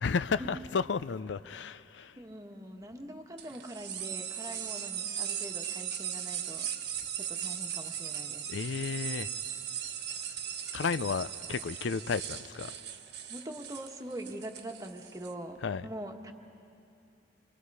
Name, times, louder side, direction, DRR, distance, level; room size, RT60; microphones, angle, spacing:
voice 1, 0.0-2.1 8.5-9.3 10.7-12.7 15.6-15.9, left 5 dB, 80° left, 0.4 m, -32 dB
voice 2, 1.9-8.5 13.3-16.3, right 1 dB, 20° right, 1.3 m, -43 dB
sound 1, 3.4-15.3, right 9 dB, 65° right, 1.2 m, -38 dB
28.5 x 24.0 x 4.8 m
head